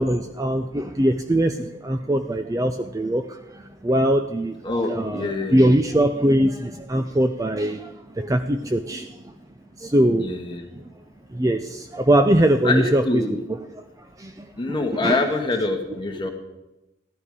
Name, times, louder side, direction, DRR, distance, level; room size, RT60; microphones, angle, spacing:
voice 1, 0.0-9.3 9.8-10.4 10.7-10.8 11.3-13.2 13.5-15.3, right 1 dB, 15° right, 7 dB, 0.5 m, -22 dB
voice 2, 4.6-5.7 10.2-10.6 12.6-13.4 14.6-16.3, left 2 dB, 25° left, 3 dB, 1.5 m, -25 dB
15.0 x 11.5 x 4.9 m, 0.97 s
head